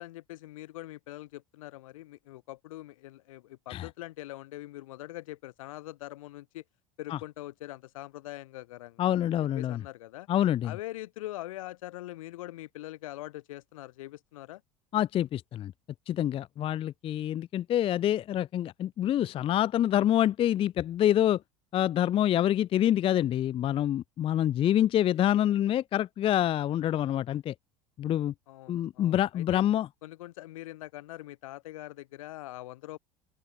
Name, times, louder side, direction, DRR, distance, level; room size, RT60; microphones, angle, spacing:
voice 1, 0.0-6.6 7.0-9.2 9.5-10.3 10.6-14.6 28.5-29.6 30.0-33.0, left 16 dB, 70° left, 1.0 m, -43 dB
voice 2, 9.0-9.8 10.3-10.7 14.9-15.7 16.1-21.4 21.7-27.5 28.0-28.3 28.7-29.9, left 11 dB, 30° left, 0.4 m, -26 dB
open air
figure-of-eight pair, 70°, 18 cm